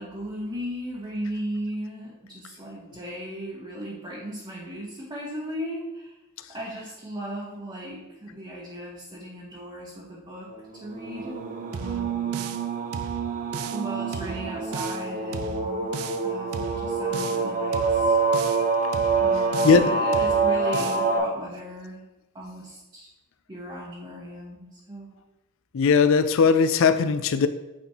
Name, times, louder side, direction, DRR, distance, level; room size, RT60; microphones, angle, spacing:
voice 1, 0.0-6.2 6.5-11.4 11.7-12.5 13.7-15.9 16.2-18.2 19.2-22.0 22.3-23.1 23.5-25.1, equal, 20° right, -6 dB, 1.0 m, -36 dB
sound 1, 10.9-21.2, right 4 dB, 40° right, 0.6 m, -26 dB
sound 2, 11.7-12.7 12.9-13.9 14.1-15.1 15.3-16.3 16.5-17.5 17.7-18.7 18.9-19.9 20.1-21.1, right 6 dB, 85° right, 0.4 m, -36 dB
voice 2, 25.7-27.5, left 5 dB, 65° left, 11 dB, 0.4 m, -19 dB
8.7 x 4.2 x 2.8 m, 1.0 s
head